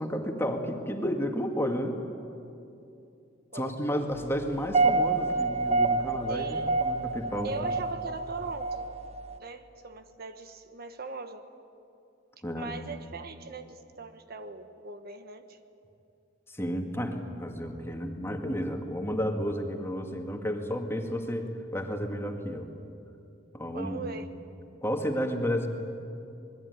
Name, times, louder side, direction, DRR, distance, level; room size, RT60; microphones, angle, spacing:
voice 1, 0.0-2.0 3.5-7.8 12.4-12.7 16.5-22.7 23.5-24.0 24.8-25.7, equal, 15° left, 3 dB, 2.2 m, -32 dB
sound 1, 4.5-9.4, right 3 dB, 35° right, 1.2 m, -28 dB
voice 2, 6.3-6.7 7.4-8.9 9.4-11.5 12.5-15.6 23.6-24.3, right 3 dB, 55° right, 8 dB, 1.3 m, -40 dB
26.5 x 20.5 x 9.7 m, 2.7 s
head